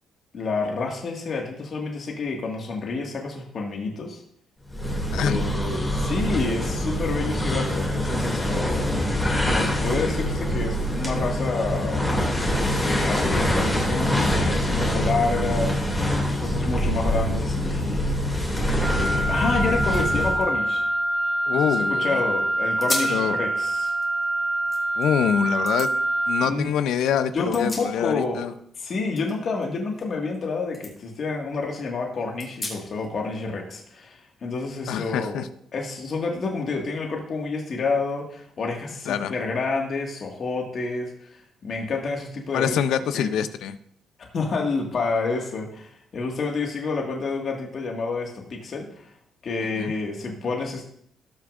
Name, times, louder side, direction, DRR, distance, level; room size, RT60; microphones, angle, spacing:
voice 1, 0.3-4.2 5.1-8.7 9.5-12.3 12.8-15.8 16.2-18.2 18.9-20.8 21.5-23.9 26.4-26.7 27.3-28.4 28.8-35.5 35.7-42.8 43.1-43.3 44.3-49.1 49.4-50.8, left 3 dB, 50° left, 0 dB, 1.8 m, -29 dB
sound 1, 4.7-20.5, equal, 15° left, 2.5 m, -24 dB
voice 2, 5.1-5.5 21.5-22.2 23.1-23.4 25.0-25.9 26.3-28.5 34.9-35.5 39.1-39.3 42.5-43.8 49.8-49.9, left 8 dB, 80° left, 12 dB, 0.6 m, -25 dB
Wind instrument woodwind instrument, 18.8-26.6, right 1 dB, 30° right, 1.2 m, -25 dB
sound 2, 19.7-21.9 22.3-22.4 22.8-23.2 23.7-25.1 25.7-25.9 27.2-28.4 28.6-30.5 30.7-30.9 31.4-31.5 32.4-33.1, left 2 dB, 35° left, 3.1 m, -37 dB
18.5 x 6.3 x 2.5 m, 0.66 s
cardioid pair, 90°, 0 cm